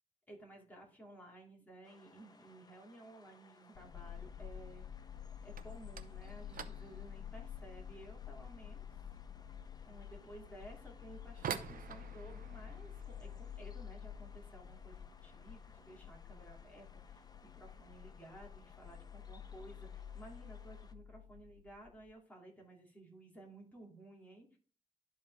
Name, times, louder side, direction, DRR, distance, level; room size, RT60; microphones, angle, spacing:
voice 1, 0.3-4.8 5.4-8.9 9.8-24.6, right 2 dB, 10° left, -2 dB, 2.6 m, -55 dB
sound 1, 1.8-20.9, left 3 dB, 25° left, 0.7 m, -64 dB
sound 2, 3.7-22.1, left 9 dB, 75° left, 0.4 m, -50 dB
sound 3, 5.5-16.2 16.5-17.1 17.3-17.7 18.0-18.1 18.8-18.9 19.8-20.0 20.3-20.8, right 8 dB, 75° right, 0.7 m, -50 dB
12.0 x 4.3 x 3.5 m, 0.40 s
wide cardioid pair, 115°, 15 cm